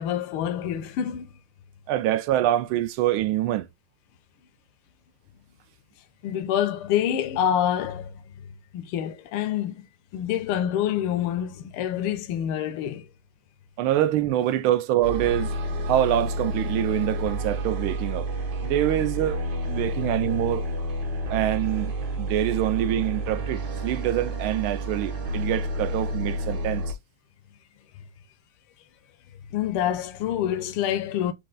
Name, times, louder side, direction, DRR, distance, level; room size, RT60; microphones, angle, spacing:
voice 1, 0.0-1.3 6.2-8.2 8.7-9.9 10.1-13.1 29.5-31.3, left 10 dB, 85° left, 1.5 m, -27 dB
voice 2, 1.9-3.7 13.8-15.5 15.9-18.3 18.6-19.4 19.7-20.6 21.3-26.8, right 12 dB, 75° right, 1.3 m, -25 dB
sound 1, 15.0-26.9, right 1 dB, 60° right, 1.6 m, -30 dB
4.5 x 2.9 x 3.7 m
omnidirectional pair, 2.4 m